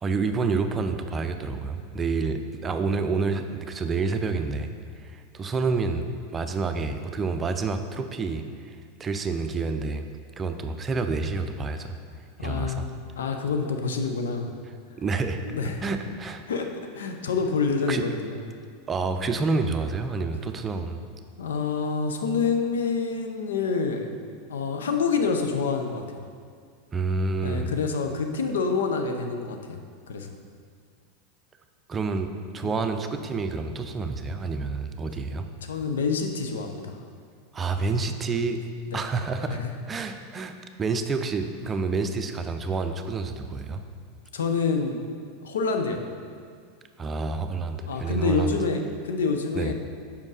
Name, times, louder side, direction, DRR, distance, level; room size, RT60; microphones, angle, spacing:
voice 1, 0.0-4.7 5.0-6.1 6.3-10.0 10.4-12.0 12.4-12.9 15.0-15.4 15.8-16.4 17.9-18.0 18.9-21.0 26.9-27.7 31.9-35.5 37.5-38.6 38.9-39.6 39.9-43.8 47.0-48.6 49.5-49.7, right 4 dB, 25° right, 7 dB, 0.5 m, -28 dB
voice 2, 12.4-12.9 13.1-14.5 15.4-15.9 16.5-18.4 21.4-24.1 24.5-26.0 27.4-29.8 30.1-30.3 32.6-32.7 35.6-37.0 38.9-39.0 39.5-39.6 44.3-45.0 45.4-46.0 47.9-49.7, left 4 dB, 75° left, 5 dB, 0.6 m, -27 dB
5.2 x 5.2 x 4.8 m, 2.1 s
hypercardioid pair, 90°, 0 cm